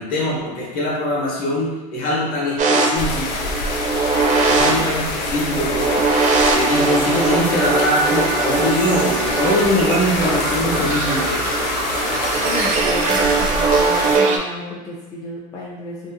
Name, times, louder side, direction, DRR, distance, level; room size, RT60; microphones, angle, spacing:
voice 1, 0.0-3.5 4.5-6.0 6.5-11.5, left 1 dB, 45° left, -4 dB, 0.9 m, -22 dB
sound 1, 2.6-14.4, right 3 dB, 40° right, 0.4 m, -20 dB
voice 2, 2.7-3.1 4.6-4.9 12.4-16.1, left 1 dB, 20° left, -6 dB, 0.4 m, -32 dB
sound 2, 2.9-14.2, left 2 dB, 85° left, 0.5 m, -25 dB
2.6 x 2.1 x 2.6 m, 1.1 s
supercardioid pair, 105°, 21 cm